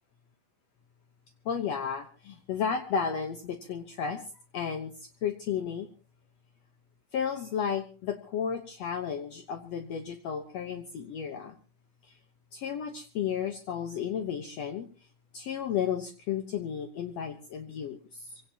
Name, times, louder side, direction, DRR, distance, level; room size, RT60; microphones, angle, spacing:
voice 1, 1.5-4.2 4.5-5.9 7.1-11.6 12.1-12.2 12.5-14.9 15.3-18.4, left 7 dB, 65° left, 6 dB, 2.0 m, -33 dB
25.5 x 17.5 x 2.9 m, 0.35 s
omnidirectional pair, 3.7 m